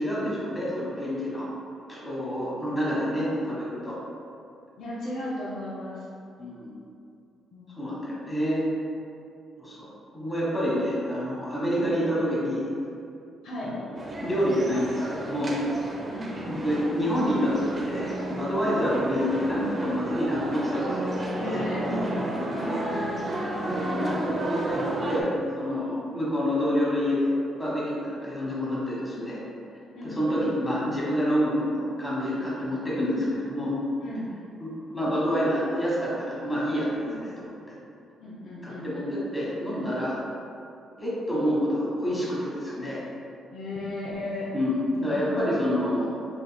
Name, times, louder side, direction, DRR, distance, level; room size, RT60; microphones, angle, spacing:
voice 1, 0.0-1.5 1.9-4.0 6.4-6.7 7.8-8.6 9.6-9.9 10.1-12.7 13.6-15.5 16.4-21.1 21.4-21.5 22.3-22.5 23.7-25.3 25.6-29.4 30.0-33.8 34.6-37.5 38.6-40.2 41.0-43.0 44.5-46.1, equal, 15° left, -7 dB, 1.3 m, -28 dB
voice 2, 4.8-6.1 7.5-7.8 13.4-13.7 16.1-16.5 21.3-22.3 22.5-23.3 29.9-30.5 34.0-34.3 37.0-37.2 38.2-38.9 43.5-44.5 44.9-45.4, left 1 dB, 75° left, -6 dB, 0.8 m, -35 dB
sound 1, 13.9-25.2, right 1 dB, 30° right, 0.6 m, -32 dB
5.2 x 3.1 x 2.3 m, 2.6 s
cardioid pair, 90°, 0 cm